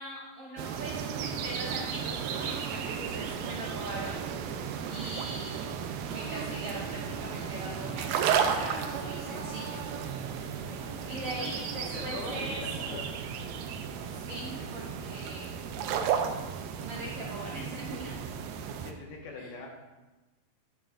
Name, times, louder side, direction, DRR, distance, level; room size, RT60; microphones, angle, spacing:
voice 1, 0.0-4.2 4.9-5.7 6.1-9.8 11.1-12.9 14.1-15.5 16.8-18.2 19.4-19.5, right 1 dB, 60° right, -5 dB, 1.5 m, -40 dB
sound 1, 0.6-18.9, right 7 dB, 90° right, 2.5 m, -34 dB
sound 2, 7.1-15.4, left 1 dB, 25° left, 2.9 m, -51 dB
voice 2, 11.9-13.1 18.8-19.7, left 3 dB, 85° left, -1 dB, 3.3 m, -42 dB
9.8 x 9.2 x 2.5 m, 1.1 s
omnidirectional pair, 4.2 m